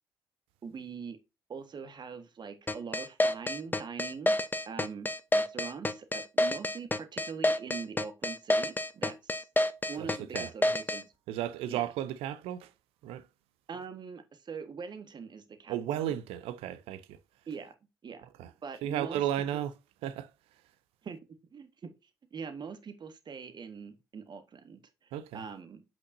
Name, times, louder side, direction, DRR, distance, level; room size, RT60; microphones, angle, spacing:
voice 1, 0.6-1.2 1.5-4.4 4.7-9.4 9.9-11.1 11.7-11.9 13.7-16.2 17.5-17.7 18.0-18.2 18.6-19.6 21.0-21.2 21.5-21.9 22.3-25.8, right 6 dB, 45° right, 1.5 m, -43 dB
sound 1, 2.7-11.0, left 1 dB, 20° left, 0.9 m, -28 dB
voice 2, 10.3-10.7 11.3-12.7 13.0-13.2 15.7-17.2 18.4-18.5 18.8-19.7 20.0-20.3 25.1-25.4, right 11 dB, 65° right, 0.7 m, -34 dB
8.0 x 6.1 x 2.7 m
figure-of-eight pair, 40°, 10 cm